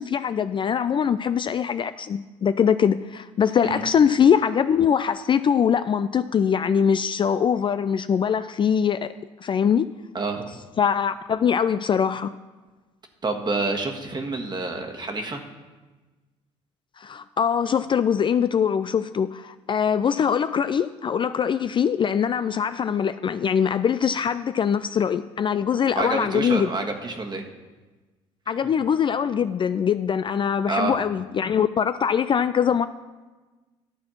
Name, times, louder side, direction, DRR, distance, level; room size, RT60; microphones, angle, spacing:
voice 1, 0.0-9.1 9.4-9.9 10.8-12.3 17.0-26.7 28.5-32.9, left 7 dB, 35° left, 13 dB, 0.4 m, -22 dB
voice 2, 13.2-15.4 25.9-27.5 30.7-31.0, right 3 dB, 30° right, 3 dB, 1.5 m, -28 dB
12.0 x 4.2 x 7.3 m, 1.2 s
hypercardioid pair, 55°, 15 cm